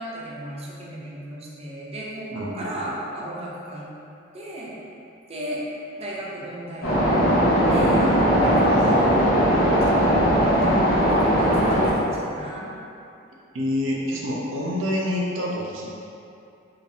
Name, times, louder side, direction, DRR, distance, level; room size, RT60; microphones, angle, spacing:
voice 1, 0.0-3.9 4.3-4.7 5.3-5.7 6.0-7.2 7.7-12.7, right 1 dB, 30° right, -5 dB, 0.7 m, -35 dB
voice 2, 2.3-2.6 8.4-9.0 13.5-15.9, left 1 dB, 85° right, -3 dB, 0.7 m, -27 dB
sound 1, 6.8-11.9, equal, 80° left, 1.3 m, -19 dB
4.8 x 2.6 x 3.5 m, 2.6 s
head